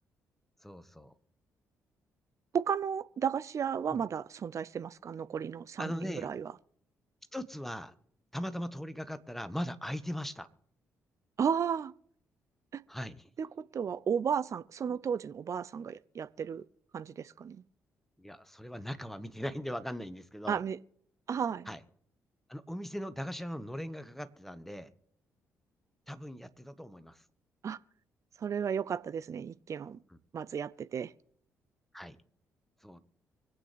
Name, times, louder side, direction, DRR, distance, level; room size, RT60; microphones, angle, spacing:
voice 1, 0.6-1.1 3.9-4.0 5.8-6.3 7.3-7.9 8.3-10.5 12.9-13.2 18.2-20.6 21.7-21.8 22.5-24.9 26.1-27.2 30.1-30.2 31.9-32.2 32.8-33.0, equal, 5° left, 1.3 m, -39 dB
voice 2, 2.5-6.5 11.4-11.9 12.7-12.8 13.4-16.6 16.9-17.6 20.5-20.8 21.3-21.7 27.6-27.8 28.4-30.0 30.3-31.1, right 7 dB, 45° right, 0.5 m, -33 dB
25.0 x 8.6 x 3.3 m
hypercardioid pair, 45°, 7 cm